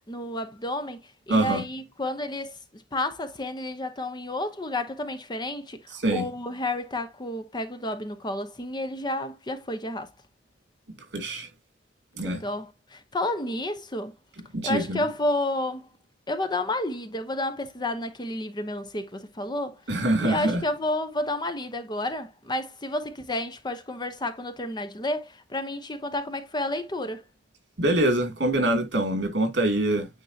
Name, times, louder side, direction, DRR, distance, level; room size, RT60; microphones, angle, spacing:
voice 1, 0.1-1.0 1.3-10.1 12.2-14.1 14.6-15.9 16.3-19.8 20.2-27.2, left 1 dB, 25° left, 0.9 m, -31 dB
voice 2, 1.3-1.6 5.9-6.2 11.1-11.5 12.2-12.4 14.5-15.0 19.9-20.6 27.8-30.1, right 1 dB, 75° right, 2.5 m, -24 dB
9.4 x 3.8 x 2.7 m
head